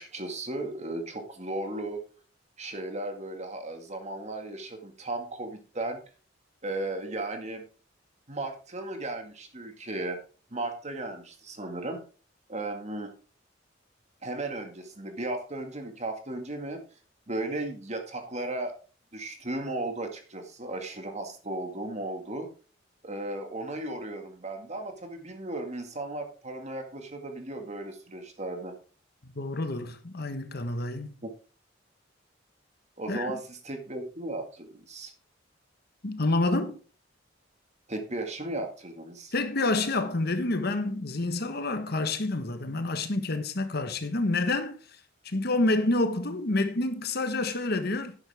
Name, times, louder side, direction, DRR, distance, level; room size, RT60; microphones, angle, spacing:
voice 1, 0.0-2.0 2.6-6.0 6.6-7.6 8.3-10.2 10.5-12.0 12.5-13.1 14.2-16.8 17.3-18.7 19.1-22.5 23.0-28.7 31.2-31.3 33.0-35.1 37.9-39.3, right 2 dB, 35° right, 2.1 m, -35 dB
voice 2, 29.2-31.2 33.1-33.3 36.0-36.8 39.3-44.8 45.2-48.2, left 2 dB, 55° left, 1.4 m, -28 dB
11.5 x 9.9 x 3.6 m
head